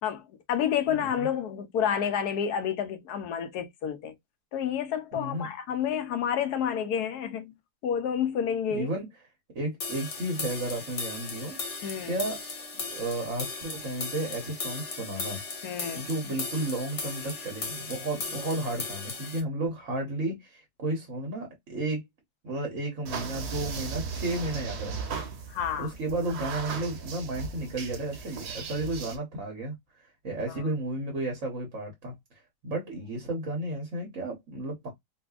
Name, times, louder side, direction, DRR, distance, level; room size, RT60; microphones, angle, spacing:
voice 1, 0.0-4.1 4.5-7.5 7.8-8.9 11.8-12.2 15.6-16.1 25.5-25.9 30.5-30.6, left 8 dB, 70° left, 1.2 m, -29 dB
voice 2, 5.1-5.5 8.7-9.1 9.5-11.6 12.0-12.4 12.7-15.4 15.9-22.0 22.4-25.2 25.8-29.7 30.2-32.1 32.6-34.9, right 2 dB, 50° right, 1.4 m, -33 dB
sound 1, 9.8-19.4, left 4 dB, 50° left, 1.3 m, -37 dB
sound 2, 23.0-29.2, right 5 dB, 70° right, 1.5 m, -37 dB
4.1 x 2.6 x 2.3 m
omnidirectional pair, 1.8 m